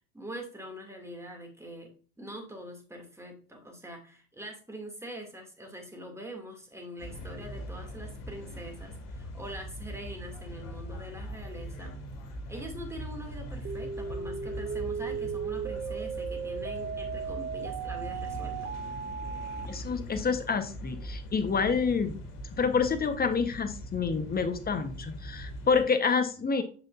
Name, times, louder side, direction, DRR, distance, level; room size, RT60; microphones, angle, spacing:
voice 1, 0.1-1.9 2.2-11.9 12.5-18.7, right 1 dB, 5° right, 2 dB, 2.6 m, -43 dB
sound 1, 7.0-25.8, equal, 50° left, 2.4 m, -41 dB
sound 2, 13.6-19.7, right 6 dB, 25° right, 0.8 m, -36 dB
voice 2, 19.7-22.2 22.6-26.6, left 5 dB, 25° left, 9 dB, 1.2 m, -28 dB
7.9 x 6.4 x 2.6 m, 0.41 s
hypercardioid pair, 85°, 39 cm